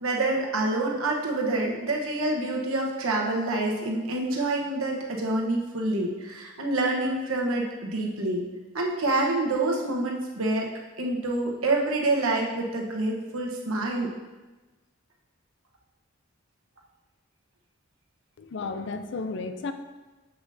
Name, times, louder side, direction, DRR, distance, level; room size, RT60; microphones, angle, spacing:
voice 1, 0.0-8.4 8.7-10.6 11.0-14.1, right 2 dB, 80° right, -1 dB, 1.1 m, -27 dB
voice 2, 18.4-19.7, left 3 dB, 55° left, 8 dB, 0.4 m, -33 dB
7.2 x 6.3 x 2.7 m, 1.2 s
head